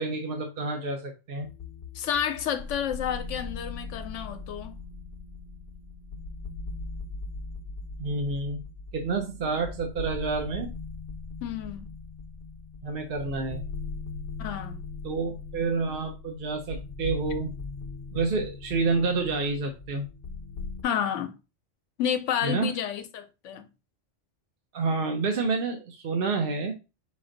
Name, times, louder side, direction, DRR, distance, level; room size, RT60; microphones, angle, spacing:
voice 1, 0.0-1.5 8.0-8.6 8.9-10.7 12.8-13.6 15.0-17.5 18.1-20.1 22.4-22.7 24.7-26.7, right 4 dB, 55° right, 0.8 m, -29 dB
sound 1, 1.4-20.8, left 4 dB, 55° left, 0.8 m, -39 dB
voice 2, 1.9-4.7 11.4-11.9 14.4-14.8 20.8-21.3 22.0-23.7, left 9 dB, 85° left, 1.0 m, -30 dB
5.1 x 2.6 x 3.8 m
omnidirectional pair, 1.2 m